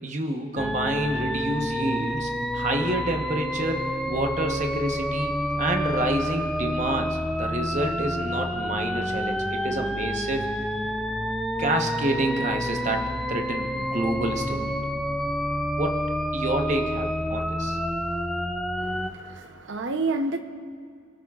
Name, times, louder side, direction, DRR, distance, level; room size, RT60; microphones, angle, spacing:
voice 1, 0.0-10.4 11.6-14.7 15.8-16.0 16.3-17.8, right 1 dB, 40° right, 3 dB, 1.0 m, -28 dB
sound 1, 0.6-19.1, equal, ahead, 0.4 m, -28 dB
voice 2, 18.8-20.4, right 3 dB, 75° right, 7 dB, 0.7 m, -29 dB
23.5 x 13.0 x 2.4 m, 2.3 s
head